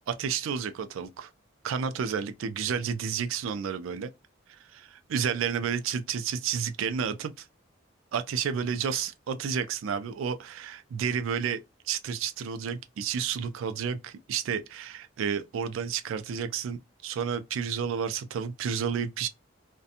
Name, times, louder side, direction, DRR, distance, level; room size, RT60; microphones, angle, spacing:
voice 1, 0.1-1.3 1.6-4.1 4.7-7.5 8.1-19.3, right 7 dB, 80° right, 0.3 m, -31 dB
2.7 x 2.1 x 2.4 m
head